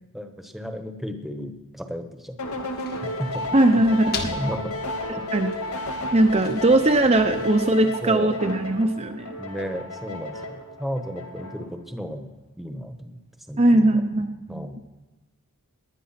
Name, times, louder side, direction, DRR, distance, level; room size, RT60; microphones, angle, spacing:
voice 1, 0.1-2.4 3.0-3.8 4.3-4.8 5.1-5.3 8.0-8.4 9.4-12.3 12.6-13.2 13.5-14.0 14.5-14.8, equal, ahead, 6 dB, 1.2 m, -34 dB
sound 1, 2.4-11.8, left 1 dB, 75° left, 2.0 m, -33 dB
sound 2, 2.4-8.5, left 3 dB, 45° left, 1.7 m, -39 dB
voice 2, 3.5-4.4 5.3-5.5 6.1-9.3 13.6-14.7, right 1 dB, 30° right, 4 dB, 0.8 m, -20 dB
19.5 x 11.0 x 5.9 m, 1.2 s
head